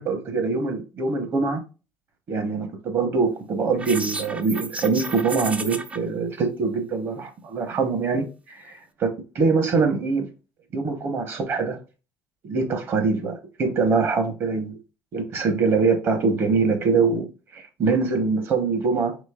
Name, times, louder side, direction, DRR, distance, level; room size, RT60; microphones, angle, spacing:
voice 1, 0.0-1.6 2.3-9.1 9.3-10.3 10.7-11.8 12.4-14.8 15.1-19.2, right 4 dB, 35° right, 1.0 m, -23 dB
sound 1, 3.8-6.0, right 3 dB, 20° right, 0.4 m, -32 dB
5.1 x 4.0 x 2.3 m
cardioid pair, 175°, 7 cm